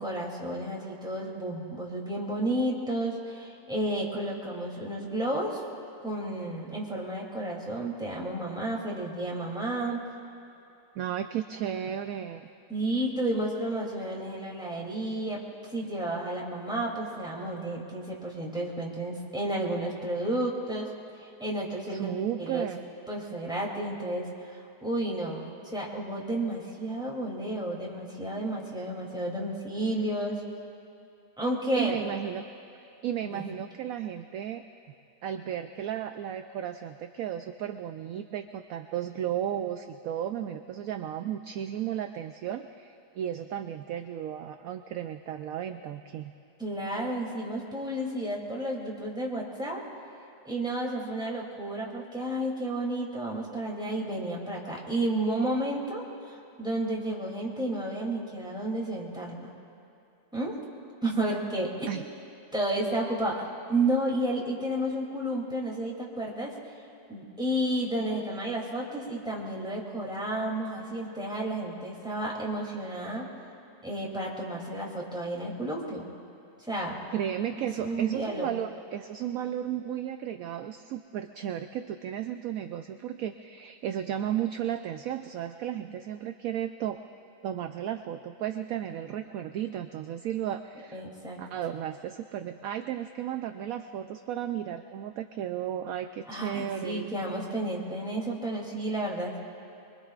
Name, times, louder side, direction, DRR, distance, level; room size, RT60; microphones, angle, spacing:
voice 1, 0.0-5.6 6.0-10.0 12.7-15.4 15.7-20.9 21.4-22.7 23.1-25.5 25.7-30.4 31.4-32.0 33.2-33.4 46.6-49.8 50.4-59.5 60.3-60.5 61.0-61.9 62.5-63.4 63.7-66.6 67.1-73.2 73.8-76.1 76.7-77.0 77.5-78.5 90.9-91.4 96.3-99.4, right 1 dB, 5° right, -4 dB, 2.7 m, -31 dB
voice 2, 11.0-12.5 21.9-22.8 31.8-32.5 33.0-34.6 35.2-46.3 61.9-62.0 77.1-87.0 87.4-91.0 91.4-97.2, right 10 dB, 70° right, 7 dB, 0.9 m, -34 dB
24.5 x 23.5 x 2.5 m, 2.8 s
omnidirectional pair, 1.8 m